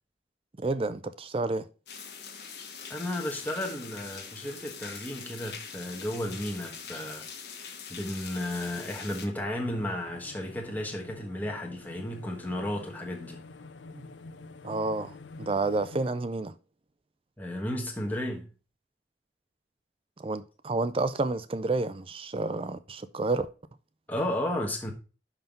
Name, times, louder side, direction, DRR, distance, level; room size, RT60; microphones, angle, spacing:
voice 1, 0.6-1.6 14.6-15.1 15.4-16.5 20.2-23.5, right 3 dB, 30° right, 0.4 m, -30 dB
sound 1, 1.9-9.3, left 6 dB, 65° left, 1.4 m, -43 dB
voice 2, 2.9-7.3 7.9-13.4 17.4-18.5 24.1-24.9, left 1 dB, 10° left, 1.2 m, -33 dB
sound 2, 9.5-16.1, left 3 dB, 90° left, 0.6 m, -48 dB
5.9 x 5.6 x 5.2 m
head